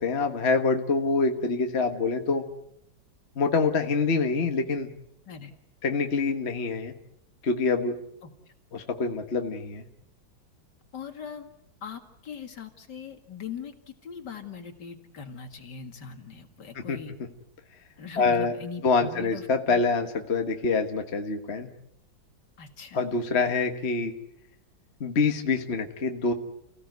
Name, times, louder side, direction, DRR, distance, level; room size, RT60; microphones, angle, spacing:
voice 1, 0.0-2.4 3.4-4.9 5.8-6.9 7.4-8.0 8.7-9.8 16.9-17.0 18.2-18.5 18.8-21.7 22.9-24.1 25.0-26.3, left 4 dB, 35° left, 5 dB, 1.5 m, -25 dB
voice 2, 10.9-11.5 11.8-17.1 18.0-19.8 22.6-23.0, left 6 dB, 60° left, 7 dB, 2.5 m, -41 dB
29.5 x 16.5 x 9.4 m, 0.84 s
omnidirectional pair, 2.2 m